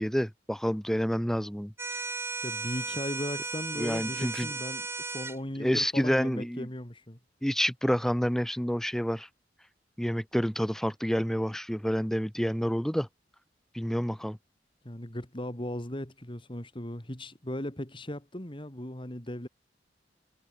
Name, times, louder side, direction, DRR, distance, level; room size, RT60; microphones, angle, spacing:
voice 1, 0.0-1.7 3.8-4.5 5.6-6.7 7.4-9.3 10.0-13.1 13.7-14.4, equal, ahead, 0.9 m, -28 dB
sound 1, 1.8-5.4, right 3 dB, 15° right, 1.7 m, -35 dB
voice 2, 2.4-7.2 14.8-19.5, left 1 dB, 30° left, 2.8 m, -37 dB
head